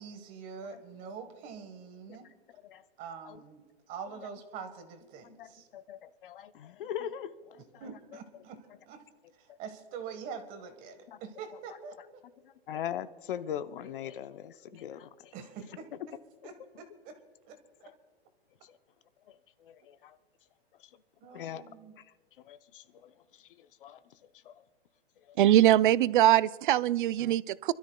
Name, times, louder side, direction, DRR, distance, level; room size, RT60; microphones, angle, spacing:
voice 1, 0.0-2.3 3.0-5.7 7.8-9.0 9.4-12.0 15.3-15.9 16.4-17.2 17.5-17.9 21.2-21.9, right 6 dB, 25° right, 1.4 m, -45 dB
voice 2, 5.2-7.9 11.1-11.2 12.4-15.3 17.8-17.9 18.7-18.8 19.6-20.2 21.3-21.6 22.0-22.1 22.4-23.1 23.6-24.0 24.4-24.6 25.3-25.4, left 10 dB, 55° left, 0.7 m, -41 dB
voice 3, 25.4-27.7, right 13 dB, 50° right, 0.4 m, -22 dB
28.5 x 13.0 x 2.3 m
hypercardioid pair, 155°, 32 cm